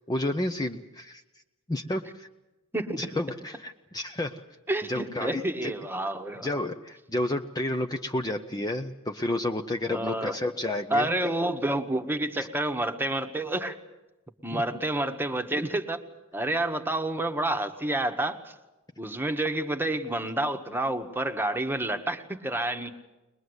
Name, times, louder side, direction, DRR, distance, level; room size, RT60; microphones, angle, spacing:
voice 1, 0.1-1.2 1.7-2.3 3.0-4.4 4.9-5.7 6.4-11.1 12.4-12.5 14.5-14.6, left 1 dB, 15° left, 5 dB, 0.7 m, -31 dB
voice 2, 4.7-6.5 9.9-10.4 10.9-13.8 14.4-16.0 16.3-18.5 19.0-22.9, right 1 dB, 10° right, 7 dB, 1.3 m, -29 dB
22.0 x 21.5 x 8.1 m, 1.0 s
head